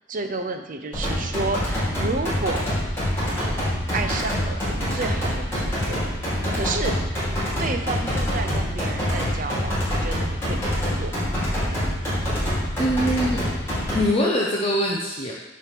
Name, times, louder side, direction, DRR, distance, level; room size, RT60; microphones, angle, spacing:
voice 1, 0.1-2.6 3.3-3.7 3.9-6.3 6.5-7.0 7.6-11.1, right 3 dB, 45° right, 6 dB, 0.6 m, -31 dB
sound 1, 0.9-14.0, equal, 15° left, 2.2 m, -25 dB
voice 2, 12.8-13.4 13.9-15.3, equal, 30° left, -3 dB, 0.7 m, -23 dB
6.6 x 3.2 x 5.9 m, 1.0 s
head